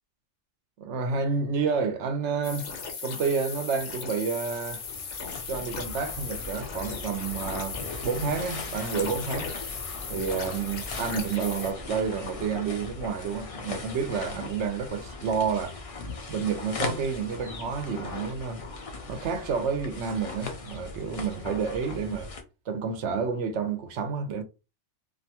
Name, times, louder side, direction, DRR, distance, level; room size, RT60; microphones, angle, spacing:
voice 1, 0.8-2.7 3.0-4.8 5.5-9.6 10.1-15.8 16.3-18.6 19.1-22.3 22.7-24.4, right 5 dB, 75° right, 0.9 m, -30 dB
sound 1, 2.4-11.7, left 5 dB, 75° left, 1.0 m, -37 dB
sound 2, 4.4-22.4, left 3 dB, 55° left, 0.4 m, -39 dB
2.6 x 2.2 x 2.8 m
omnidirectional pair, 1.2 m